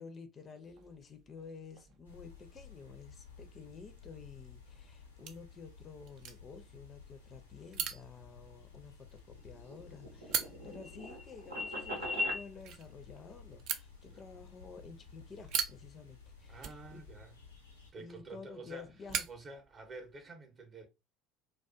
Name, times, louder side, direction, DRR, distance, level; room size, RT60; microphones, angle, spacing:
voice 1, 0.0-17.0 18.0-19.3, left 5 dB, 35° left, 0.5 m, -51 dB
sound 1, 0.6-20.3, right 8 dB, 55° right, 0.3 m, -45 dB
sound 2, 2.0-17.9, left 5 dB, 90° left, 0.6 m, -55 dB
sound 3, 9.4-12.4, left 2 dB, 85° right, 0.7 m, -38 dB
voice 2, 14.1-14.4 16.5-17.4 17.9-18.9 19.3-20.9, right 3 dB, 35° right, 0.7 m, -49 dB
2.3 x 2.2 x 2.3 m
figure-of-eight pair, 60°, 0 cm